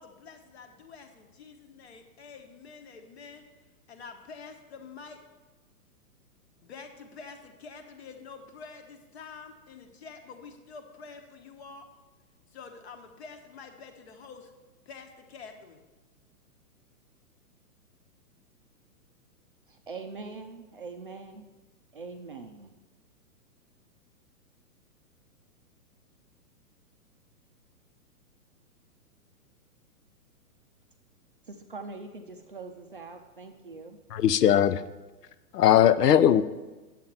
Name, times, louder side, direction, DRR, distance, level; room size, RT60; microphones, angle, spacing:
voice 1, 0.0-3.4 3.9-5.2 6.6-11.9 12.5-14.5 14.9-15.8, left 5 dB, 45° left, 5 dB, 1.2 m, -47 dB
voice 2, 19.7-21.5 21.9-22.7 31.5-34.0, right 4 dB, 35° right, 5 dB, 0.5 m, -42 dB
voice 3, 34.1-34.8 35.5-36.4, left 10 dB, 85° left, 14 dB, 0.7 m, -19 dB
9.1 x 7.5 x 5.6 m, 1.2 s
hypercardioid pair, 175°, 46 cm